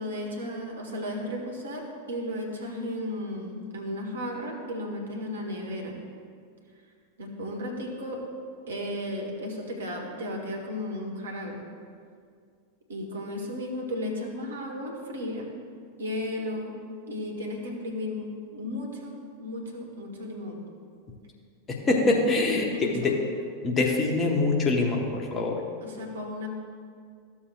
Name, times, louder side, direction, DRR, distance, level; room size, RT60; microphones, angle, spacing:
voice 1, 0.0-1.8 2.1-6.0 7.2-8.2 8.7-11.6 12.9-15.5 16.0-16.7 17.1-20.6 22.7-23.1 25.8-26.5, left 1 dB, 65° right, 0 dB, 1.5 m, -34 dB
voice 2, 21.7-23.2 23.6-25.6, left 3 dB, 25° left, 0 dB, 1.2 m, -24 dB
14.0 x 7.1 x 2.5 m, 2.1 s
figure-of-eight pair, 90°, 0 cm